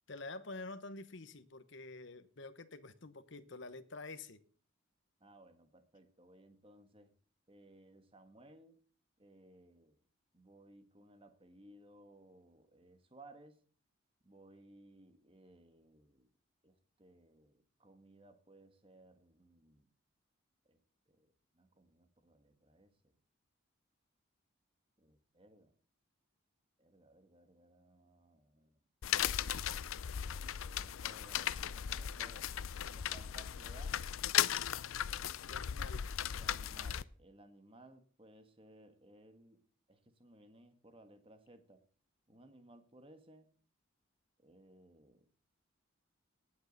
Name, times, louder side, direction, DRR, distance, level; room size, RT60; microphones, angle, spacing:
voice 1, 0.1-4.4 35.5-36.1, left 3 dB, 60° left, 1.0 m, -48 dB
voice 2, 5.2-7.1 7.5-8.8 9.2-10.0 10.3-13.6 14.2-16.3 16.6-19.9 20.7-20.8 21.1-21.3 21.5-23.2 25.0-25.7 26.8-28.8 30.2-32.5 32.9-34.0 35.6-36.0 36.3-39.6 39.9-41.8 42.3-43.5 44.4-45.2, right 1 dB, 25° right, 1.5 m, -61 dB
sound 1, 29.0-37.0, left 10 dB, 80° left, 0.5 m, -37 dB
18.5 x 6.6 x 4.0 m
head